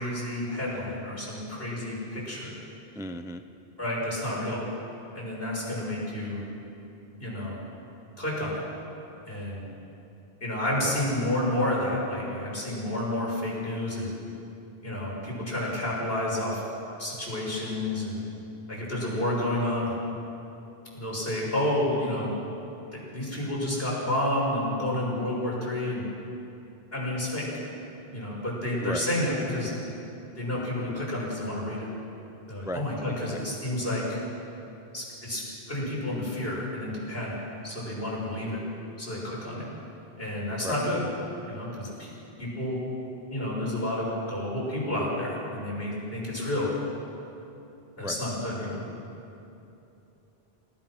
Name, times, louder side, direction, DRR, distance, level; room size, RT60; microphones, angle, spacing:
voice 1, 0.0-2.5 3.8-4.6 5.1-6.4 7.2-7.6 8.2-8.6 9.3-9.6 10.4-14.1 14.8-16.6 17.0-18.2 18.7-19.9 20.9-22.3 22.9-26.0 26.9-27.5 28.1-29.7 30.4-31.9 32.5-34.2 34.9-37.4 37.6-38.6 39.0-39.7 40.2-41.0 41.5-42.1 42.4-42.8 43.3-46.7 48.0-48.8, left 1 dB, 65° left, -5 dB, 7.0 m, -30 dB
voice 2, 2.9-3.4 10.7-11.0 28.8-29.1 32.6-32.8 33.2-33.4 40.6-40.8 48.0-48.2, left 1 dB, 5° right, 8 dB, 0.6 m, -35 dB
29.0 x 18.5 x 6.2 m, 2.9 s
omnidirectional pair, 1.1 m